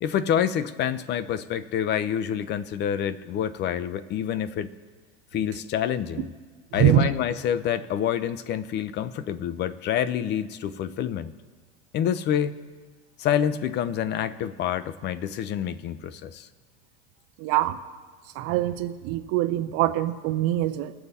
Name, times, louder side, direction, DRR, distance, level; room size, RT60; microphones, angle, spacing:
voice 1, 0.0-4.7 5.3-6.3 6.7-11.3 11.9-12.5 13.2-16.5, left 9 dB, 35° left, 15 dB, 0.6 m, -27 dB
voice 2, 6.8-7.1 17.4-17.8 18.4-20.9, right 12 dB, 50° right, 8 dB, 0.7 m, -23 dB
21.0 x 7.1 x 4.1 m, 1.5 s
supercardioid pair, 125°, 30 cm